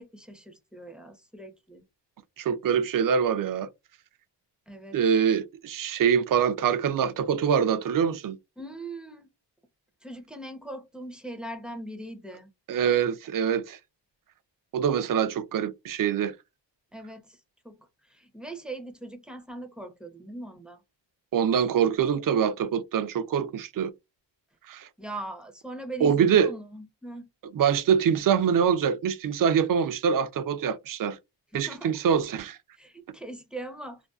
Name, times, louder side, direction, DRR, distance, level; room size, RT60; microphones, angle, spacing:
voice 1, 0.0-1.8 4.7-5.0 8.6-9.3 10.0-12.5 16.9-17.4 17.6-17.8 18.0-20.8 25.0-27.3 31.5-31.9 32.8-34.0, right 1 dB, ahead, 0.6 m, -40 dB
voice 2, 2.4-3.7 4.9-8.4 12.7-13.8 14.7-16.3 21.3-23.9 24.7-24.9 26.0-26.5 27.5-31.2 31.5-32.6, right 7 dB, 45° right, 0.5 m, -24 dB
2.5 x 2.2 x 2.3 m
cardioid pair, 70°, 46 cm